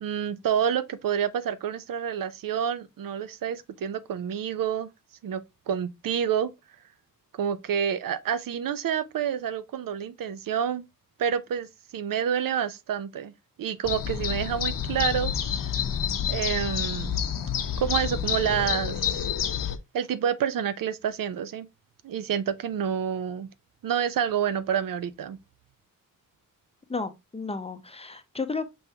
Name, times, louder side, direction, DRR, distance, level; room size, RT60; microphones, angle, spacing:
voice 1, 0.0-4.9 5.2-6.5 7.3-10.8 11.2-11.7 11.9-13.3 13.6-15.3 16.3-17.2 17.8-19.1 19.9-21.7 22.0-23.5 23.8-25.4, right 8 dB, 85° right, 0.5 m, -28 dB
sound 1, 13.8-19.8, left 8 dB, 90° left, 0.7 m, -28 dB
voice 2, 26.9-28.7, left 4 dB, 20° left, 0.6 m, -33 dB
5.4 x 3.5 x 2.7 m
wide cardioid pair, 125°, 32 cm